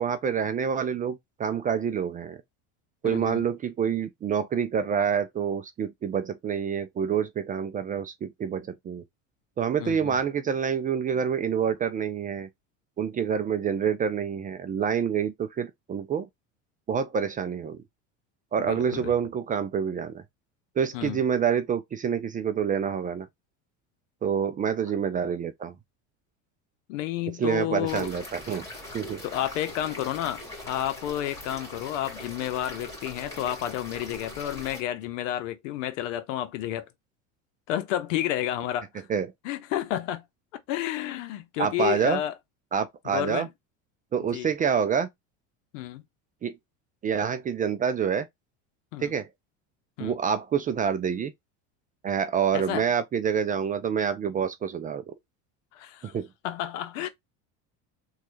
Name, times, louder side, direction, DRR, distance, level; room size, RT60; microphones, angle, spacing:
voice 1, 0.0-2.4 3.0-9.0 9.6-12.5 13.0-16.3 16.9-17.8 18.5-20.2 20.8-23.3 24.2-25.7 27.4-28.7 28.9-29.2 39.1-39.3 41.6-42.2 42.7-43.5 44.1-45.1 46.4-46.5 47.0-48.3 49.0-49.3 50.0-51.3 52.0-55.1 56.1-56.3, right 7 dB, 25° right, 0.3 m, -27 dB
voice 2, 3.0-3.5 9.8-10.2 18.6-19.2 20.9-21.2 26.9-28.1 29.2-36.9 37.7-39.1 39.4-40.2 40.7-42.3 43.0-43.5 44.3-44.5 45.7-46.0 48.9-49.1 50.0-50.2 52.5-52.9 55.7-56.2 56.4-57.1, left 12 dB, 90° left, 0.7 m, -31 dB
sound 1, 27.9-34.8, left 1 dB, 10° left, 1.8 m, -41 dB
3.2 x 2.4 x 3.0 m
supercardioid pair, 115°, 37 cm